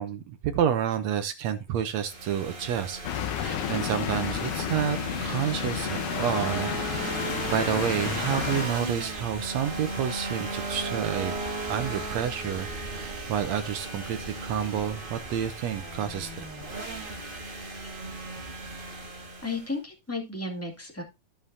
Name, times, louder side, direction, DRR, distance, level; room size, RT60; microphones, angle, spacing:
voice 1, 0.0-3.0 3.4-7.1 7.5-16.5, right 9 dB, 70° right, 10 dB, 1.8 m, -30 dB
sound 1, 1.9-19.7, right 2 dB, 25° right, 1.2 m, -36 dB
sound 2, 3.0-8.7, left 10 dB, 85° left, 2.5 m, -32 dB
voice 2, 19.4-21.0, left 3 dB, 5° left, 2 dB, 1.6 m, -33 dB
14.5 x 5.4 x 2.7 m, 0.26 s
omnidirectional pair, 3.5 m